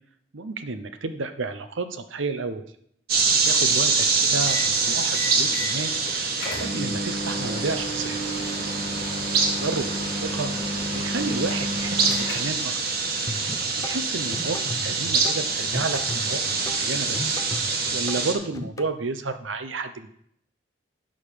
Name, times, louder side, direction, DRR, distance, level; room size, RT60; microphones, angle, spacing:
voice 1, 0.3-2.6 3.4-6.1 6.6-8.2 9.5-10.5 10.9-12.7 13.8-16.4 16.7-17.4 17.9-20.1, right 3 dB, 85° right, 10 dB, 0.8 m, -31 dB
sound 1, 3.1-18.3, right 4 dB, 50° right, 1.4 m, -25 dB
sound 2, 4.5-4.7 5.1-5.7 6.1-6.2 6.4-12.7, equal, 65° left, 3.5 m, -32 dB
sound 3, 13.3-18.9, left 1 dB, 15° left, 0.5 m, -36 dB
11.5 x 3.8 x 6.8 m, 0.70 s
head